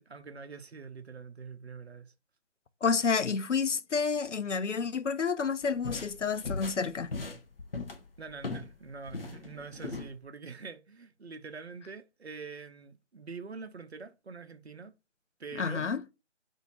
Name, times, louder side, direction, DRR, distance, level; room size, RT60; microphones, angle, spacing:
voice 1, 0.0-2.1 8.2-14.9 15.4-15.9, right 5 dB, 65° right, 0.7 m, -45 dB
voice 2, 2.8-7.1 15.6-16.0, left 5 dB, 80° left, 0.6 m, -29 dB
sound 1, 5.6-8.7 9.0-10.1, left 3 dB, 55° left, 0.8 m, -38 dB
5.0 x 2.7 x 2.9 m
figure-of-eight pair, 160°, 36 cm